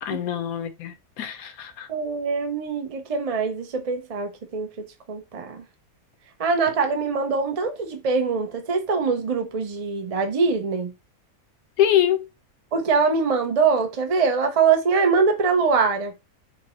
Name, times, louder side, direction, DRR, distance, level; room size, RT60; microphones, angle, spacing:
voice 1, 0.0-1.9 11.8-12.3, left 11 dB, 80° left, 1.2 m, -24 dB
voice 2, 1.9-5.6 6.4-10.9 12.7-16.1, right 5 dB, 40° right, 0.5 m, -23 dB
5.7 x 2.2 x 3.0 m
omnidirectional pair, 1.5 m